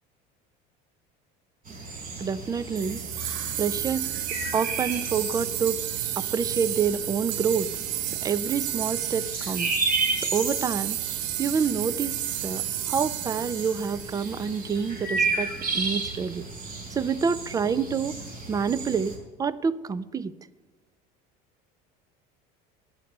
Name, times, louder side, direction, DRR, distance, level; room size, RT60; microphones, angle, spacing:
sound 1, 1.7-19.2, right 3 dB, 50° right, 4.0 m, -33 dB
voice 1, 2.2-3.0 3.6-4.1 4.5-5.8 6.2-7.7 8.1-9.7 10.2-11.0 11.4-16.4 16.9-18.2 18.5-19.1 19.4-20.3, right 6 dB, 20° right, 17 dB, 0.4 m, -27 dB
sound 2, 2.8-14.8, right 13 dB, 65° right, 0.7 m, -32 dB
12.0 x 8.7 x 6.7 m, 1.3 s
cardioid pair, 135°, 20 cm